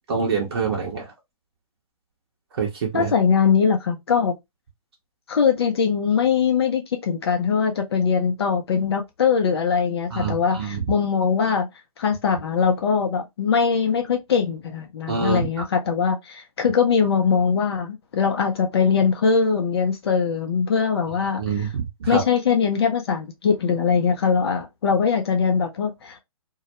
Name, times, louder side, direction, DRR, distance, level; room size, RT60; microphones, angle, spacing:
voice 1, 0.1-1.1 2.5-3.1 10.1-10.8 15.1-15.5 21.4-22.2, right 5 dB, 45° right, 0.7 m, -26 dB
voice 2, 2.9-4.3 5.3-11.7 12.0-21.4 22.1-26.2, left 6 dB, 45° left, 0.5 m, -21 dB
2.2 x 2.0 x 2.7 m
figure-of-eight pair, 140°, 19 cm